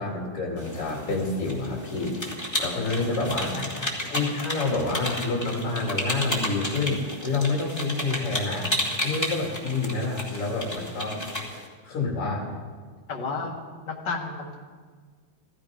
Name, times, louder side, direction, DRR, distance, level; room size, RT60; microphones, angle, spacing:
voice 1, 0.0-2.1 2.6-3.6 4.1-8.7 9.0-11.2 11.8-12.5, left 3 dB, 35° left, -2 dB, 3.6 m, -28 dB
sound 1, 0.6-11.7, equal, 10° left, 1.2 m, -32 dB
voice 2, 3.5-4.2 11.0-11.3 13.1-13.6 13.8-14.6, left 4 dB, 75° left, -1 dB, 1.0 m, -33 dB
15.0 x 15.0 x 5.2 m, 1.5 s
omnidirectional pair, 4.6 m